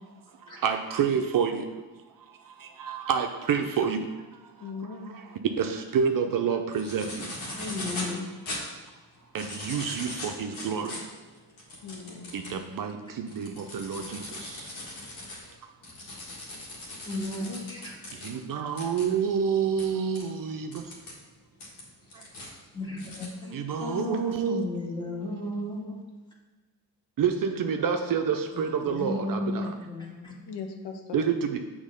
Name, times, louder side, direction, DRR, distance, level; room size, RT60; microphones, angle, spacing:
voice 1, 0.4-1.7 2.2-7.3 9.3-11.0 12.3-14.7 18.1-20.9 22.1-22.2 23.5-24.7 27.2-29.7 31.1-31.6, right 7 dB, 50° right, 5 dB, 0.6 m, -29 dB
voice 2, 4.6-5.2 7.8-8.3 11.8-12.3 17.3-17.6 30.5-31.0, left 4 dB, 65° left, 4 dB, 0.8 m, -38 dB
sound 1, 6.7-8.1 8.5-8.6 9.2-12.6 13.1-18.3 18.8-19.0 19.8-19.9 20.1-20.2 20.7-21.1 21.6-22.5 23.0-23.3, left 2 dB, 90° left, 1.7 m, -39 dB
voice 3, 7.5-8.2 17.0-18.0 22.1-22.3 22.7-23.5 23.8-26.0 28.5-30.3, left 2 dB, 10° left, -3 dB, 1.8 m, -34 dB
6.2 x 3.2 x 5.2 m, 1.3 s
supercardioid pair, 65°, 44 cm